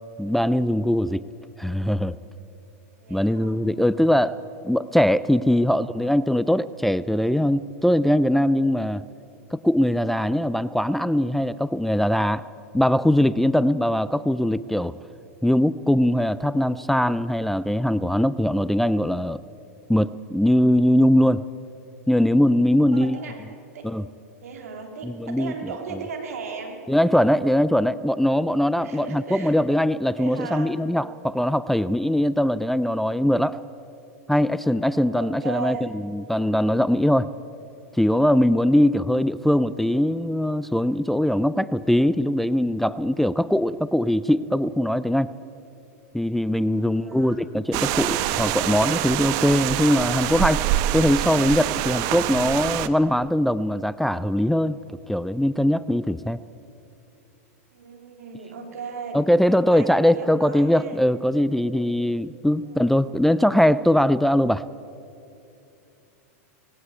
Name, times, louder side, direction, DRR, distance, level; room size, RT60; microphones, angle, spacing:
voice 1, 0.2-1.2 1.6-2.1 3.1-4.4 4.6-9.0 9.5-12.4 12.7-15.0 15.4-19.4 19.9-21.4 22.1-23.2 23.8-24.0 25.0-25.5 26.9-33.6 34.3-37.3 37.9-45.3 46.1-54.8 55.1-56.4 59.1-64.6, left 1 dB, ahead, 16 dB, 0.4 m, -21 dB
voice 2, 3.0-3.6 22.9-23.4 23.7-23.9 24.4-26.8 28.8-29.6 30.1-30.8 34.9-35.9 46.8-47.4 57.7-61.0 62.6-63.0, right 5 dB, 75° right, 3 dB, 3.7 m, -37 dB
sound 1, 47.7-52.9, right 13 dB, 50° right, 1.0 m, -25 dB
19.0 x 16.5 x 8.7 m, 2.8 s
hypercardioid pair, 110°, 8 cm